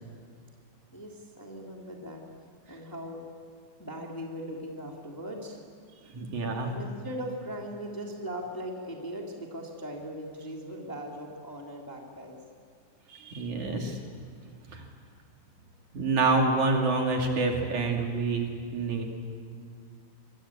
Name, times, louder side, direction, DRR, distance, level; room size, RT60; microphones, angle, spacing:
voice 1, 0.9-2.2 2.7-3.3 3.8-5.6 6.6-12.4, equal, 5° left, -1 dB, 2.5 m, -39 dB
voice 2, 6.1-6.7 13.1-14.0 14.7-14.8 15.9-19.0, right 3 dB, 60° right, 1 dB, 3.9 m, -27 dB
25.5 x 23.0 x 8.7 m, 2.2 s
omnidirectional pair, 4.0 m